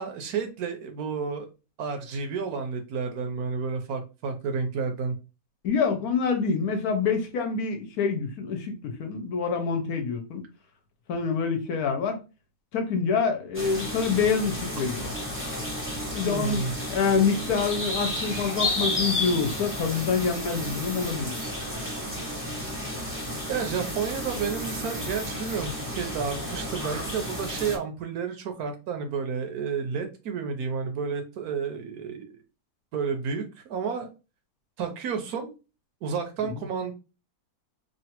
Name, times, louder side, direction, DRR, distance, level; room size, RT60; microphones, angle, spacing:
voice 1, 0.0-1.5 1.8-5.1 16.2-16.7 18.1-18.3 23.5-32.4 32.9-34.1 34.8-35.5 36.0-36.9, right 5 dB, 70° right, 1.0 m, -31 dB
voice 2, 5.6-10.4 11.1-12.2 12.7-15.1 16.1-21.3, left 5 dB, 70° left, 1.1 m, -26 dB
sound 1, 13.5-27.8, left 1 dB, 10° right, 0.6 m, -32 dB
3.1 x 2.3 x 2.8 m
omnidirectional pair, 1.7 m